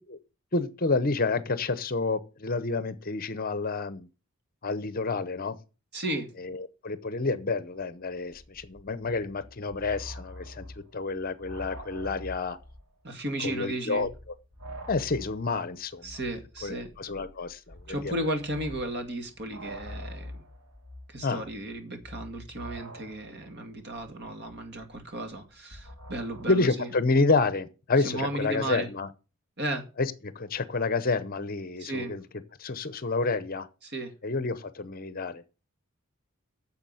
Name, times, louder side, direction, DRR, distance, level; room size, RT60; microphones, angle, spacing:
voice 1, 0.5-4.1 4.6-5.6 6.4-10.7 10.9-12.6 13.4-14.1 14.9-16.1 16.6-18.1 21.2-21.4 26.5-29.1 30.0-32.2 32.6-33.7 34.2-35.4, left 3 dB, 45° left, 0.8 m, -29 dB
voice 2, 5.9-6.3 13.0-14.1 16.0-16.9 17.9-20.4 21.1-26.9 28.0-28.9 29.6-29.8 31.8-32.2 33.8-34.1, right 1 dB, 50° right, 2.3 m, -34 dB
sound 1, 8.3-12.9 13.2-13.3 13.9-26.5, equal, 90° right, 2.5 m, -46 dB
9.8 x 7.1 x 7.7 m
head